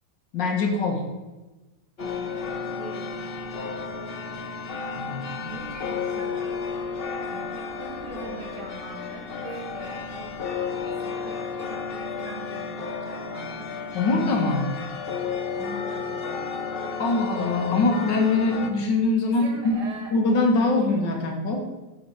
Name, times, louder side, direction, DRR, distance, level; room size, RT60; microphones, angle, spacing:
voice 1, 0.3-1.0 4.9-5.7 13.9-14.7 17.0-19.8 20.1-21.6, left 3 dB, 80° left, 2 dB, 2.2 m, -23 dB
sound 1, 2.0-18.7, left 5 dB, 55° left, 0.6 m, -32 dB
voice 2, 2.0-3.3 5.5-6.5 7.2-10.4 11.0-13.9 15.6-16.5 19.3-20.1 20.6-20.9, right 2 dB, 65° right, 2 dB, 2.1 m, -42 dB
8.2 x 5.1 x 6.9 m, 1.1 s
omnidirectional pair, 1.9 m